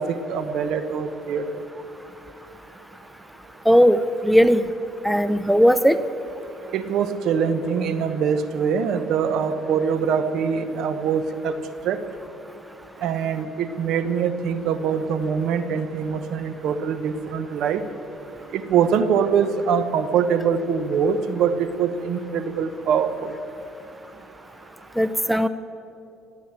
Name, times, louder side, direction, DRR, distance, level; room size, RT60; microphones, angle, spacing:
voice 1, 0.0-1.6 6.7-11.5 11.8-12.0 13.0-17.8 18.5-23.4, right 7 dB, 65° right, 11 dB, 1.1 m, -23 dB
voice 2, 3.7-4.6 5.0-6.0 25.0-25.5, equal, ahead, 13 dB, 0.6 m, -17 dB
16.5 x 9.6 x 8.9 m, 2.7 s
supercardioid pair, 95°, 0 cm